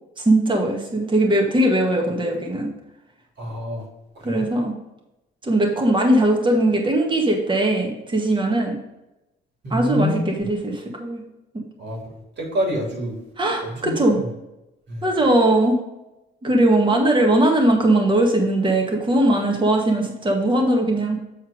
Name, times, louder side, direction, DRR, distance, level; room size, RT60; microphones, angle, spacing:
voice 1, 0.2-2.7 4.2-4.7 5.4-8.8 9.7-11.2 13.4-14.2 15.0-15.8 16.4-21.2, right 1 dB, 25° right, 1 dB, 1.8 m, -19 dB
voice 2, 3.4-3.8 4.2-4.4 9.6-10.2 11.8-12.0 12.4-13.2 13.6-13.9 14.9-15.0, equal, 60° right, -1 dB, 3.0 m, -26 dB
7.9 x 4.4 x 5.0 m, 0.94 s
cardioid pair, 90°, 20 cm